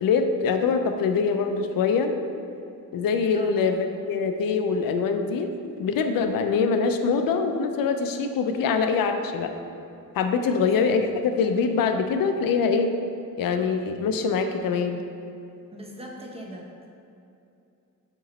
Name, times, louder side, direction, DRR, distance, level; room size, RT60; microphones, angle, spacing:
voice 1, 0.0-2.1 2.9-9.5 10.1-13.0 13.4-15.0, left 5 dB, 90° left, 6 dB, 0.5 m, -24 dB
voice 2, 15.7-16.7, right 1 dB, 15° right, -1 dB, 0.8 m, -39 dB
7.6 x 3.0 x 4.1 m, 2.7 s
cardioid pair, 115°, 33 cm